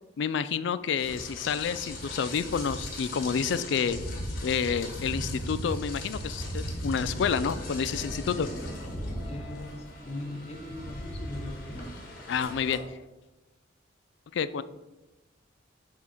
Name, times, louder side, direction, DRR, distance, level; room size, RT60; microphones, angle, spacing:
voice 1, 0.2-4.0 4.4-8.5 12.3-12.8 14.3-14.6, left 6 dB, 65° left, 15 dB, 0.3 m, -29 dB
Rain, 1.0-12.7, left 1 dB, 45° left, 1.3 m, -37 dB
voice 2, 9.2-11.6, left 1 dB, 30° left, 4 dB, 0.6 m, -39 dB
6.1 x 3.7 x 5.8 m, 1.1 s
head